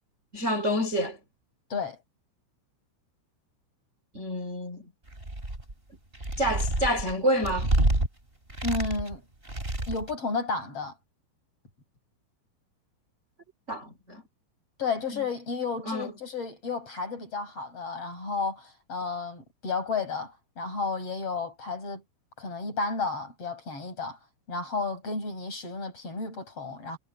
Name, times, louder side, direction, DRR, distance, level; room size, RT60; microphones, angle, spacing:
voice 1, 0.3-1.2 4.1-4.8 6.4-7.7 13.7-14.2 15.1-15.2 15.9-16.1, equal, 30° right, 1.3 m, -28 dB
sound 1, 5.1-5.7 6.1-8.1 8.5-9.1 9.4-10.1, right 1 dB, 10° right, 4.4 m, -28 dB
voice 2, 8.6-9.2 9.9-10.9 14.8-22.0 22.4-24.2 24.5-27.0, left 4 dB, 30° left, 7.9 m, -32 dB
omnidirectional pair, 5.9 m